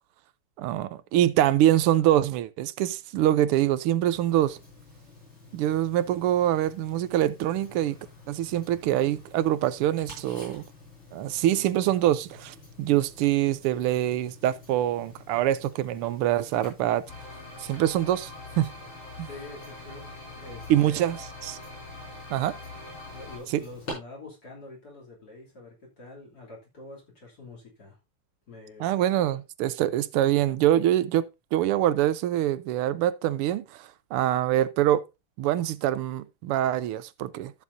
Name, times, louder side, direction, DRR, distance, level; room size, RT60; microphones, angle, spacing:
voice 1, 0.6-4.6 5.5-7.9 8.3-10.6 11.1-17.0 17.6-18.3 18.6-18.7 19.2-19.3 20.7-21.6 22.3-22.6 23.5-23.6 28.8-35.0 35.4-37.5, right 12 dB, 85° right, 1.6 m, -24 dB
Tick-tock, 4.1-23.9, left 2 dB, 60° left, 6.6 m, -49 dB
sound 1, 17.1-23.4, left 2 dB, 80° left, 6.6 m, -43 dB
voice 2, 19.2-21.2 23.1-28.0 28.5-28.9 29.3-29.4, left 2 dB, 45° left, 3.5 m, -46 dB
14.0 x 7.1 x 2.7 m
omnidirectional pair, 2.4 m